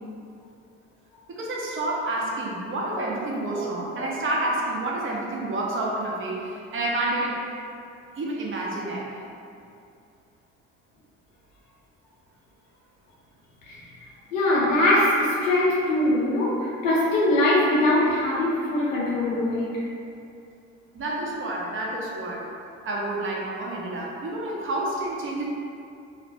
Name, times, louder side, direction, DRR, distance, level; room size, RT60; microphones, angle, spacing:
voice 1, 1.3-7.4 8.2-9.2 20.9-22.4 22.8-25.5, right 2 dB, 35° right, -4 dB, 0.8 m, -29 dB
voice 2, 14.3-19.7, left 1 dB, 90° left, -6 dB, 0.7 m, -22 dB
2.5 x 2.1 x 3.9 m, 2.5 s
hypercardioid pair, 60°, 38 cm